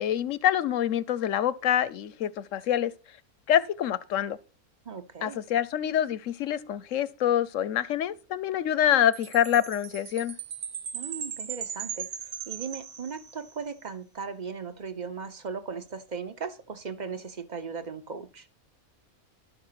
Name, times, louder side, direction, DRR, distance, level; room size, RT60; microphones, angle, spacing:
voice 1, 0.0-2.9 3.5-4.4 5.2-10.4, left 10 dB, 65° left, 1.0 m, -26 dB
voice 2, 4.8-5.4 10.9-12.1 12.5-18.5, right 5 dB, 35° right, 0.9 m, -37 dB
Chime, 9.1-13.6, right 8 dB, 80° right, 1.5 m, -38 dB
11.5 x 5.9 x 5.7 m
omnidirectional pair, 1.5 m